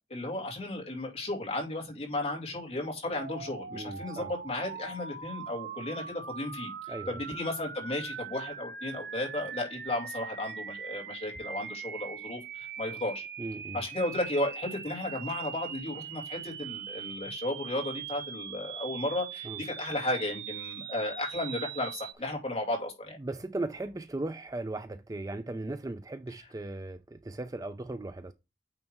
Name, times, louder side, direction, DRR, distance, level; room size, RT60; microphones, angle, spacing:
voice 1, 0.1-13.2 13.7-23.2, left 1 dB, 35° left, 2.6 m, -34 dB
sound 1, 3.1-22.1, right 7 dB, 60° right, 0.7 m, -41 dB
voice 2, 3.7-4.3 6.9-7.2 13.4-13.8 19.5-19.6 23.2-28.3, right 2 dB, 20° right, 0.4 m, -37 dB
9.0 x 3.3 x 4.6 m
head